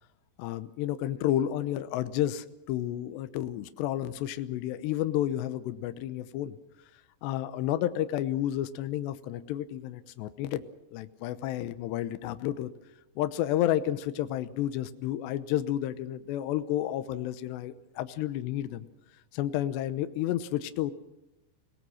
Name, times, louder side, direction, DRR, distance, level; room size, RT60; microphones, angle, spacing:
voice 1, 0.4-6.6 7.2-10.6 10.9-12.7 13.2-18.9 19.3-20.9, left 12 dB, 80° left, 11 dB, 3.1 m, -31 dB
27.5 x 18.5 x 6.4 m, 0.93 s
omnidirectional pair, 5.0 m